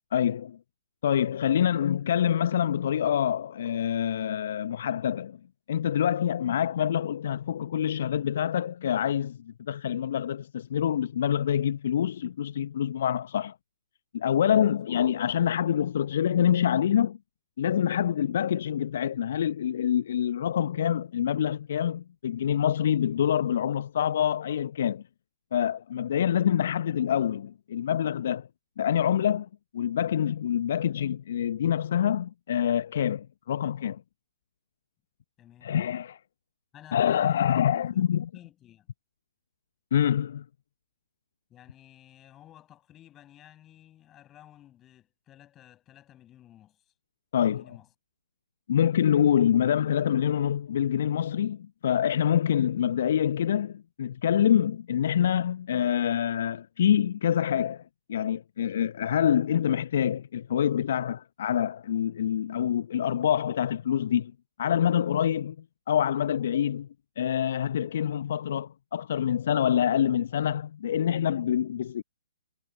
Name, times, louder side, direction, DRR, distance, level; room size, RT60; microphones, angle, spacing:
voice 1, 0.1-0.6 1.0-5.4 5.7-13.6 14.1-17.2 17.6-25.0 25.5-28.5 28.8-34.0 35.6-36.2 36.9-38.3 39.9-40.5 47.3-47.6 48.7-64.3 64.6-65.6 65.9-66.9 67.2-72.0, left 9 dB, 50° left, 0.7 m, -26 dB
voice 2, 35.4-35.7 36.7-38.1 38.3-38.9 41.5-46.9 47.4-47.9, left 12 dB, 20° left, 5.8 m, -53 dB
figure-of-eight pair, 125°, 0 cm